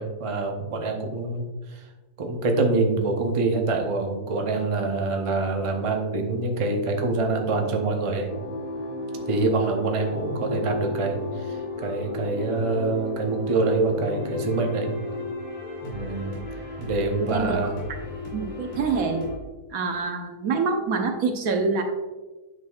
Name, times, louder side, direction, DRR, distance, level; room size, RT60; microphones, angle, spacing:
voice 1, 0.0-1.8 2.2-8.3 9.3-14.9 15.8-16.4 16.8-17.8, right 3 dB, 35° right, 2 dB, 0.5 m, -25 dB
sound 1, 8.2-19.4, left 2 dB, 55° left, 3.0 m, -33 dB
voice 2, 17.2-17.6 18.3-19.2 19.7-21.8, right 4 dB, 65° right, 5 dB, 1.2 m, -26 dB
9.4 x 6.1 x 2.4 m, 1.2 s
omnidirectional pair, 1.7 m